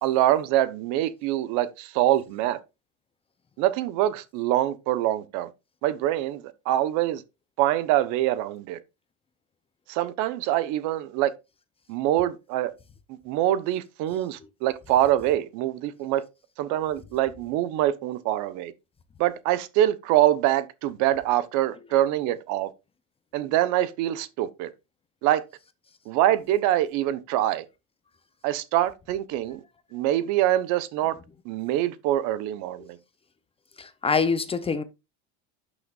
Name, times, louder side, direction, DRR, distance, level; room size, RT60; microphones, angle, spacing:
voice 1, 0.0-2.6 3.6-5.5 5.8-7.2 7.6-8.8 9.9-11.3 11.9-12.7 13.1-16.2 16.6-18.7 19.2-22.7 23.3-24.7 25.2-25.4 26.1-27.6 28.4-29.6 29.9-31.2 31.4-33.0, right 13 dB, 60° right, 1.1 m, -24 dB
voice 2, 33.8-34.8, left 5 dB, 15° left, 0.7 m, -25 dB
12.0 x 6.6 x 2.5 m
supercardioid pair, 125°, 33 cm